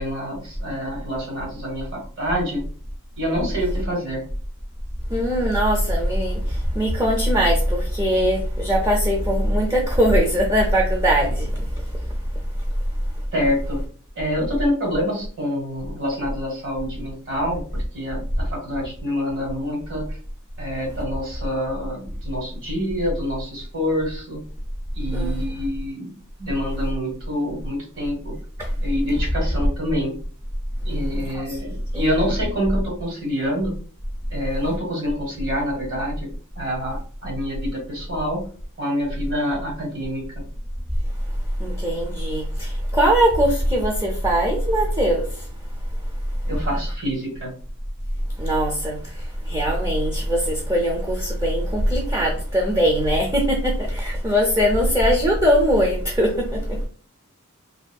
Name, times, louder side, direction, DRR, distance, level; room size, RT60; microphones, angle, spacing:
voice 1, 0.0-2.6 3.2-4.2 13.3-13.8 14.1-20.2 20.6-24.4 24.9-26.1 26.4-28.3 28.8-30.1 30.8-33.7 34.3-38.5 38.8-40.3 46.5-47.6, equal, 60° right, 1.4 m, -27 dB
voice 2, 5.1-6.4 6.8-11.5 25.1-25.3 31.3-31.4 31.9-32.2 41.6-45.2 48.4-49.0 49.5-56.6, equal, 15° right, 0.4 m, -20 dB
2.6 x 2.6 x 2.2 m
head